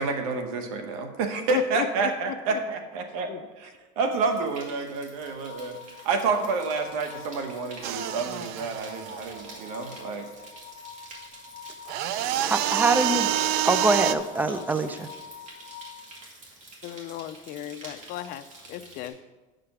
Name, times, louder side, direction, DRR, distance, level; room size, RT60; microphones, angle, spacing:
voice 1, 0.0-3.3 3.6-3.7 4.0-10.3, right 4 dB, 85° right, 6 dB, 1.1 m, -29 dB
voice 2, 1.5-2.6 3.3-3.5 10.1-10.3 16.8-19.2, left 11 dB, 55° left, 11 dB, 0.6 m, -35 dB
sound 1, 4.0-19.1, right 2 dB, 45° right, 2.3 m, -48 dB
sound 2, 5.2-16.0, left 8 dB, 70° left, 1.1 m, -46 dB
sound 3, 7.8-9.9 11.9-14.2, right 12 dB, 65° right, 0.5 m, -27 dB
voice 3, 12.4-13.3 13.6-15.1, right 2 dB, 10° right, 10 dB, 0.6 m, -24 dB
8.9 x 5.0 x 5.9 m, 1.2 s
supercardioid pair, 120°, 18 cm